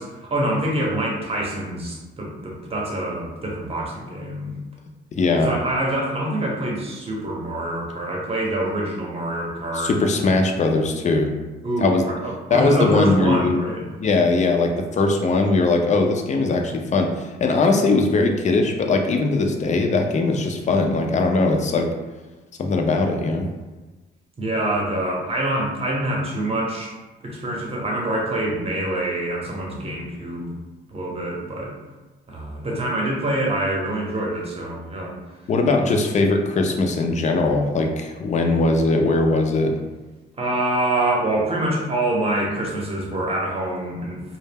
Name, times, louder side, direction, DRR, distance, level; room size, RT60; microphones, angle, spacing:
voice 1, 0.0-4.5 5.4-9.9 11.6-13.9 24.4-26.9 27.2-30.6 30.9-31.8 32.3-35.2 40.4-44.4, right 1 dB, 30° right, -2 dB, 0.8 m, -25 dB
voice 2, 5.1-5.5 9.7-11.3 11.8-12.1 12.5-13.6 14.0-21.9 22.6-23.5 35.5-39.7, left 3 dB, 35° left, 3 dB, 0.4 m, -20 dB
2.1 x 2.0 x 3.4 m, 1.2 s
cardioid pair, 90°, 20 cm